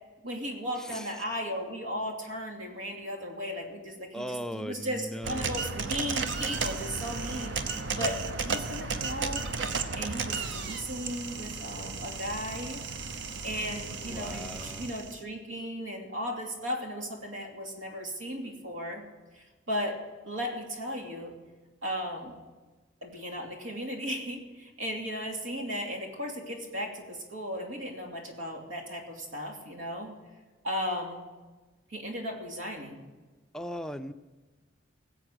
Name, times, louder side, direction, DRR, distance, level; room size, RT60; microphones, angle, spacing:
voice 1, 0.2-9.5 10.0-12.9 13.4-19.1 19.3-21.4 21.8-22.4 23.0-30.2 30.6-31.2 31.9-33.0, equal, 85° right, 1 dB, 2.7 m, -36 dB
voice 2, 4.1-5.6 14.1-14.9 33.5-34.1, equal, 5° left, 9 dB, 0.4 m, -38 dB
sound 1, 5.2-15.2, right 4 dB, 65° right, 0.8 m, -34 dB
18.5 x 7.9 x 6.2 m, 1.2 s
head